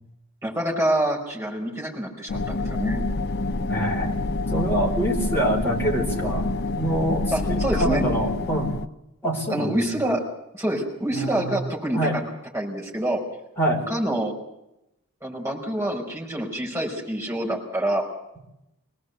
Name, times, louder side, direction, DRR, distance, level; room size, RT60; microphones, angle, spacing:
voice 1, 0.4-3.1 7.3-8.0 9.5-10.2 10.5-12.2 12.5-13.2 13.9-14.3 15.2-18.0, right 1 dB, 10° right, -1 dB, 5.3 m, -26 dB
sound 1, 2.3-8.9, left 2 dB, 50° left, 0.8 m, -27 dB
voice 2, 3.7-4.1 4.5-8.7 9.2-10.0 11.1-11.6 11.9-12.2 13.6-13.8, right 1 dB, 10° left, -2 dB, 4.6 m, -25 dB
24.5 x 18.0 x 8.1 m, 0.87 s
head